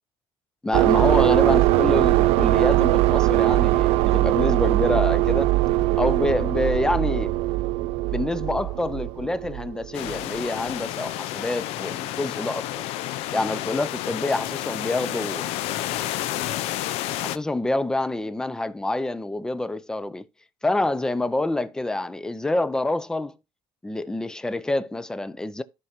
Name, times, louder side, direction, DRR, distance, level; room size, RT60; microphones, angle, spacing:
voice 1, 0.6-5.5 6.0-7.3 8.1-12.8 13.3-15.4 17.2-20.2 20.6-23.3 23.8-25.6, left 2 dB, 5° left, 0.5 m, -27 dB
sound 1, 0.7-10.2, right 16 dB, 75° right, 0.5 m, -21 dB
sound 2, 9.9-17.4, left 14 dB, 75° left, 0.5 m, -30 dB
14.0 x 4.8 x 2.7 m
cardioid pair, 140°, 10 cm